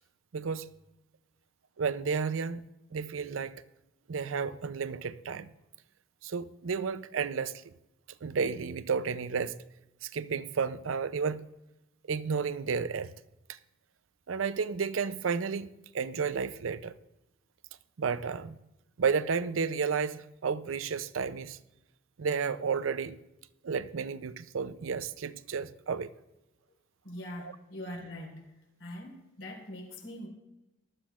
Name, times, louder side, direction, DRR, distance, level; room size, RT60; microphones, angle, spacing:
voice 1, 0.3-0.7 1.8-2.7 2.9-3.6 4.1-5.5 6.2-7.6 8.2-9.6 10.0-11.4 12.1-13.1 13.5-13.6 14.3-15.7 15.9-16.9 18.0-18.6 19.0-21.6 22.2-23.2 23.6-26.1 27.4-27.6, right 5 dB, 90° right, 0.5 m, -32 dB
voice 2, 27.0-28.5 28.8-30.3, left 1 dB, 85° left, 4.2 m, -42 dB
18.5 x 12.0 x 2.4 m
head